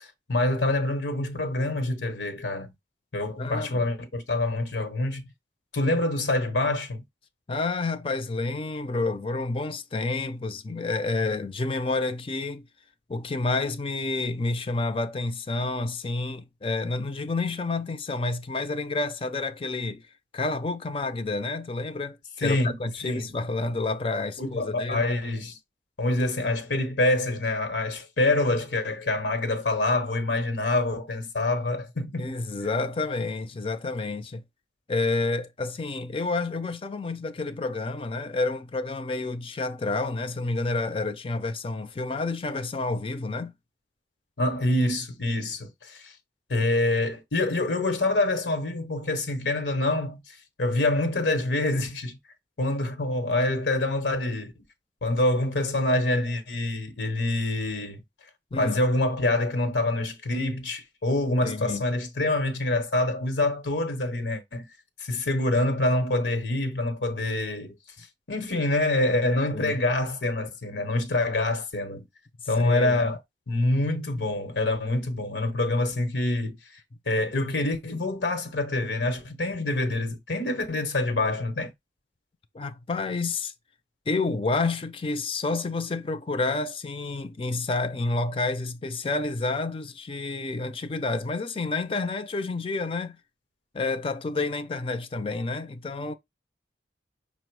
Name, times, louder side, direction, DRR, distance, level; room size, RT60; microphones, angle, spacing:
voice 1, 0.0-2.7 3.1-5.3 5.7-7.0 22.4-23.3 24.4-25.6 26.0-32.3 44.4-46.1 46.5-52.2 52.6-54.5 55.0-58.0 58.6-64.7 65.0-72.1 72.5-73.2 73.5-81.7, left 2 dB, 80° left, 0.9 m, -26 dB
voice 2, 3.4-3.9 7.5-12.7 13.1-20.0 20.3-25.0 32.2-34.4 34.9-43.5 58.5-58.8 61.4-61.8 69.5-69.8 72.6-73.0 82.5-83.5 84.1-93.2 93.7-96.1, left 3 dB, 30° left, 0.4 m, -29 dB
5.6 x 2.0 x 4.5 m
head